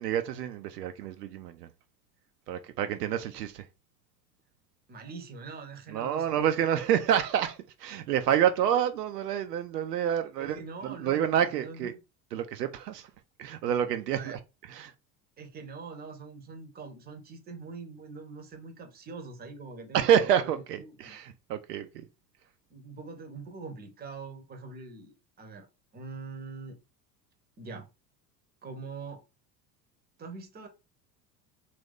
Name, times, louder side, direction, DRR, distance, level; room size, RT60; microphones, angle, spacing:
voice 1, 0.0-1.7 2.5-3.6 5.9-10.6 10.8-11.9 12.3-13.1 13.4-14.4 14.7-14.9 19.9-22.0, right 9 dB, 70° right, 0.5 m, -28 dB
voice 2, 4.9-6.4 10.4-11.9 14.1-14.4 15.4-21.2 22.7-25.7 25.9-26.8 27.6-27.9 28.6-29.2 30.2-30.7, right 4 dB, 20° right, 0.8 m, -43 dB
3.0 x 2.6 x 3.4 m
figure-of-eight pair, 75°, 50 cm